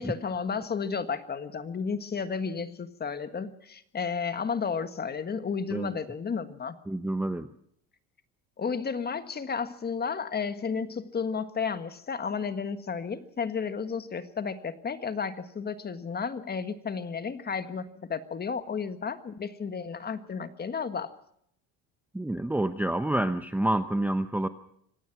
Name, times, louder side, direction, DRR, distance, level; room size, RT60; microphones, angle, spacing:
voice 1, 0.0-6.7 8.6-21.1, left 5 dB, 25° left, 11 dB, 1.6 m, -32 dB
voice 2, 6.9-7.5 22.1-24.5, right 1 dB, 5° right, 9 dB, 0.8 m, -28 dB
26.0 x 17.0 x 6.0 m, 0.69 s
cardioid pair, 120°, 38 cm